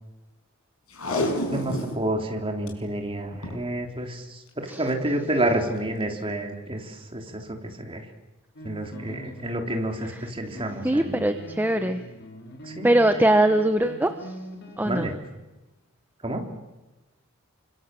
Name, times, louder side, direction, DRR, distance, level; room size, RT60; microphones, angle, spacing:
Packing tape duct tape, 0.9-2.0 2.4-2.7 3.3-3.6 4.7-4.9 5.5-5.6, left 1 dB, 85° left, 5.9 m, -29 dB
voice 1, 1.2-8.1 8.6-11.2 12.6-12.9 14.9-15.1 16.2-16.4, right 1 dB, 25° right, 3 dB, 3.5 m, -29 dB
sound 1, 8.6-15.1, equal, 55° left, 5.2 m, -43 dB
voice 2, 10.8-12.0 12.8-14.4 14.8-15.1, right 1 dB, 10° right, 8 dB, 1.0 m, -22 dB
29.0 x 25.5 x 7.7 m, 1.1 s
head